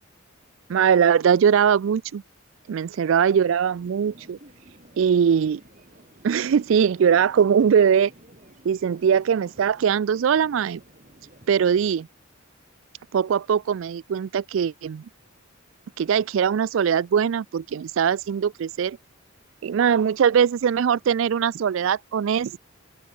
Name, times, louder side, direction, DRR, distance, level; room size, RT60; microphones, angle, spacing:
voice 1, 0.7-2.2 2.7-4.4 5.0-5.6 6.2-8.1 8.6-10.8 11.5-12.1 13.1-15.1 16.0-19.0 19.6-22.6, right 7 dB, 65° right, 0.3 m, -21 dB
sound 1, 3.7-11.9, right 1 dB, 35° right, 4.1 m, -51 dB
open air
head